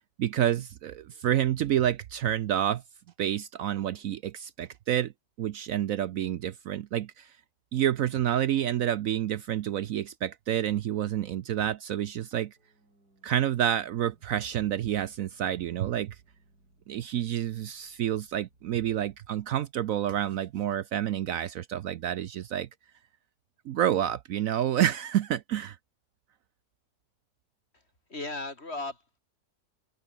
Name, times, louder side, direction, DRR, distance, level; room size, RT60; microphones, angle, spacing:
voice 1, 0.0-2.8 3.2-5.1 5.4-7.3 7.7-12.5 13.2-16.2 16.9-22.7 23.7-25.8, right 11 dB, 65° right, 1.0 m, -29 dB
sound 1, 12.6-19.6, right 2 dB, 85° right, 8.7 m, -66 dB
voice 2, 28.1-29.2, left 2 dB, 40° left, 3.7 m, -36 dB
omnidirectional pair, 1.7 m